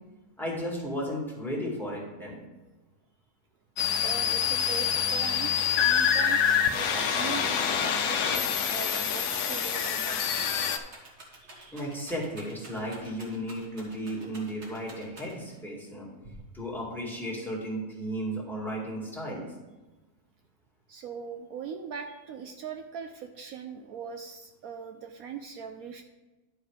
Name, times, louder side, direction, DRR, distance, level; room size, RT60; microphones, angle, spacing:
voice 1, 0.4-2.4 5.5-5.7 11.7-16.1 16.5-19.5, equal, ahead, -4 dB, 2.1 m, -34 dB
sound 1, 3.8-10.8, left 8 dB, 80° left, 1.2 m, -26 dB
voice 2, 4.0-10.8 11.4-11.8 20.9-26.0, right 7 dB, 70° right, 5 dB, 1.0 m, -41 dB
Rattle, 6.1-15.6 16.2-16.9, right 1 dB, 45° right, 1.9 m, -49 dB
11.0 x 4.8 x 4.9 m, 1.1 s
omnidirectional pair, 1.7 m